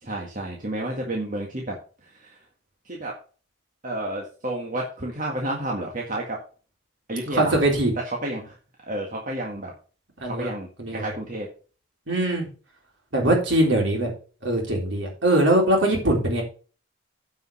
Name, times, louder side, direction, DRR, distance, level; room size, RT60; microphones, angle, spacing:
voice 1, 0.0-1.8 2.1-2.4 2.8-3.2 3.8-6.4 7.1-7.6 8.0-8.5 8.9-9.7 10.2-11.5, right 1 dB, 40° right, -1 dB, 1.8 m, -31 dB
voice 2, 7.3-7.9 10.2-10.5 10.8-11.1 12.1-12.5 13.1-14.1 14.4-16.4, right 1 dB, 60° right, 0 dB, 3.8 m, -21 dB
9.9 x 5.5 x 5.6 m, 0.37 s
head